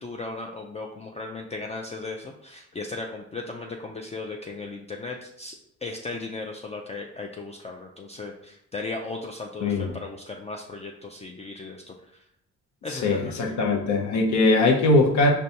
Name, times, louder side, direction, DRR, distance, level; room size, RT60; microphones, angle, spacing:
voice 1, 0.0-11.9 12.8-13.6, left 3 dB, 20° left, 2 dB, 0.3 m, -36 dB
voice 2, 9.6-9.9 12.9-15.3, left 2 dB, 65° left, 1 dB, 0.7 m, -21 dB
5.0 x 2.2 x 2.7 m, 0.76 s
cardioid pair, 90°, 30 cm